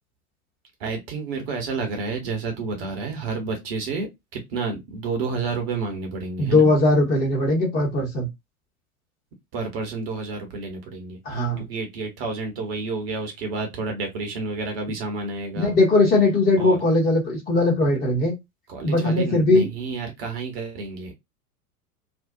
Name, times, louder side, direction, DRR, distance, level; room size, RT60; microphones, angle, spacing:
voice 1, 0.8-6.7 9.5-15.8 16.6-16.8 18.7-21.1, right 4 dB, 40° right, 0.9 m, -30 dB
voice 2, 6.4-8.3 11.2-11.6 15.6-18.3 18.8-19.7, left 2 dB, 20° left, 0.9 m, -19 dB
2.6 x 2.2 x 2.2 m
figure-of-eight pair, 95°, 46 cm